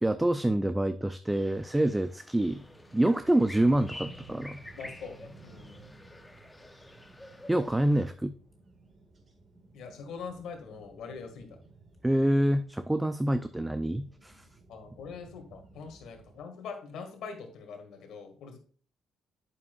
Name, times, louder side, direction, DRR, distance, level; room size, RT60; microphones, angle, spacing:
voice 1, 0.0-2.6 2.9-4.6 7.5-8.3 12.0-14.4, right 1 dB, 10° right, 10 dB, 0.4 m, -26 dB
sound 1, 1.3-8.1, left 1 dB, 10° left, 0.8 m, -49 dB
sound 2, 2.5-16.4, right 3 dB, 35° right, 1.7 m, -55 dB
voice 2, 4.8-5.8 9.7-11.6 14.7-18.6, left 5 dB, 75° left, 4 dB, 1.7 m, -43 dB
8.3 x 7.1 x 2.3 m, 0.43 s
cardioid pair, 90°, 0 cm